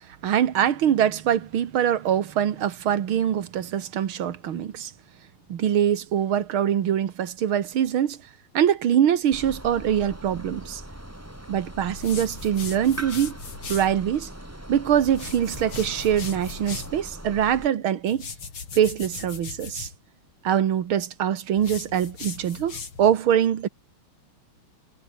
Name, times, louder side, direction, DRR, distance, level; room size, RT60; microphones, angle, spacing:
voice 1, 0.2-4.9 5.5-8.2 8.5-10.8 11.5-13.4 13.7-14.3 14.7-18.3 18.7-19.9 20.4-23.7, right 9 dB, 80° right, 2.3 m, -23 dB
sound 1, 9.3-17.7, right 1 dB, 5° right, 3.3 m, -40 dB
sound 2, 11.9-13.9 15.1-17.0 18.1-20.0 21.6-23.2, left 5 dB, 80° left, 4.2 m, -38 dB
omnidirectional pair, 2.3 m